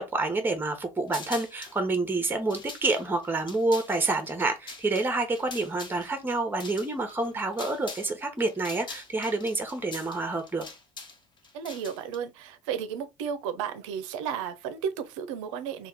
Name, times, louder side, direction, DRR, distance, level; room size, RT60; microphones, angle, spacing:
voice 1, 0.0-10.7, right 2 dB, 10° right, 0.9 m, -28 dB
sound 1, 1.1-1.8 2.3-8.1 8.4-12.2, left 3 dB, 30° left, 1.2 m, -43 dB
voice 2, 11.5-15.9, right 7 dB, 70° right, 0.6 m, -33 dB
3.4 x 2.4 x 3.4 m
figure-of-eight pair, 60°, 17 cm